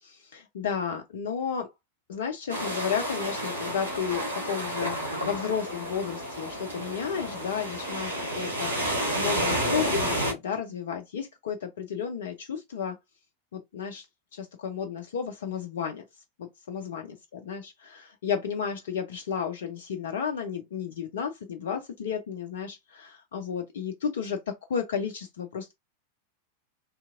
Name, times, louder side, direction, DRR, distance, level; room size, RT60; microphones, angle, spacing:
voice 1, 0.0-1.7 2.1-5.0 5.2-13.0 13.5-14.1 14.3-16.0 16.4-24.4 24.7-25.7, left 7 dB, 60° left, 0.4 m, -33 dB
sound 1, 2.5-10.3, equal, 75° right, 1.4 m, -30 dB
3.4 x 2.7 x 2.4 m
figure-of-eight pair, 90°, 0 cm